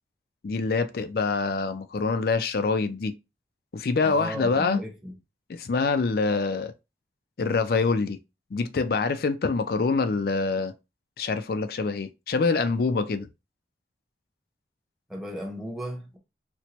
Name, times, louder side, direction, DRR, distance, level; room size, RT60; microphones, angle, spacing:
voice 1, 0.4-3.1 3.7-4.8 5.5-6.7 7.4-8.2 8.5-10.7 11.2-13.3, left 4 dB, 55° left, 0.4 m, -25 dB
voice 2, 4.0-5.1 15.1-16.2, equal, ahead, 0.8 m, -35 dB
4.3 x 2.2 x 2.9 m
head